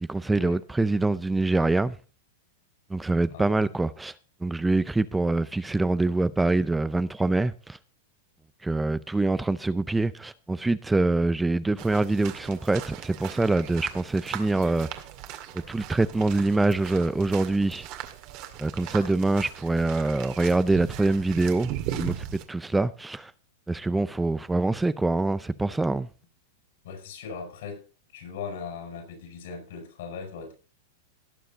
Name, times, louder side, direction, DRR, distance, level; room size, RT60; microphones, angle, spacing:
voice 1, 0.0-2.0 2.9-4.1 4.4-7.8 8.6-14.9 15.5-17.9 18.6-23.3 23.7-26.1, right 2 dB, 5° right, 0.5 m, -25 dB
sound 1, 11.8-22.4, right 11 dB, 45° right, 2.0 m, -38 dB
voice 2, 26.8-30.5, left 5 dB, 70° left, 6.8 m, -39 dB
18.0 x 7.0 x 4.0 m
supercardioid pair, 140°, 0 cm